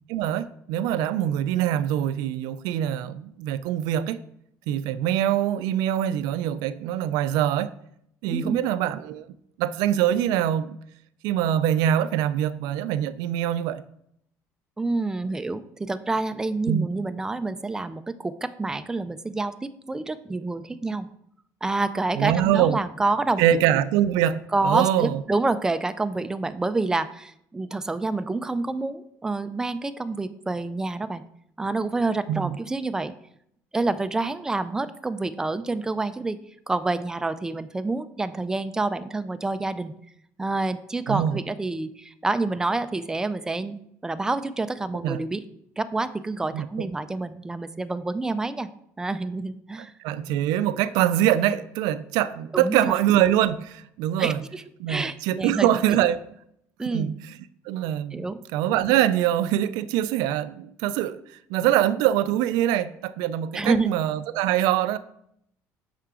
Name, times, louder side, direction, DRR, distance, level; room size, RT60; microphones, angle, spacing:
voice 1, 0.1-4.2 4.7-7.7 8.2-9.3 9.6-10.8 11.2-13.8 16.7-16.9 22.2-22.8 23.4-25.2 32.3-32.5 41.1-41.4 45.0-45.2 46.5-46.9 50.0-54.4 54.8-56.2 56.9-57.3 57.7-58.2 58.5-61.2 61.5-65.0, right 11 dB, 85° right, 0.4 m, -24 dB
voice 2, 8.3-8.6 14.8-21.1 21.6-23.4 24.5-31.2 31.6-33.1 33.7-36.4 36.7-39.9 40.4-45.4 45.8-48.7 49.0-49.9 52.5-52.9 54.2-54.6 54.9-55.7 56.8-57.1 58.1-58.4 63.5-64.0, right 3 dB, 10° right, 0.3 m, -28 dB
6.8 x 5.6 x 3.7 m
cardioid pair, 135°, 6 cm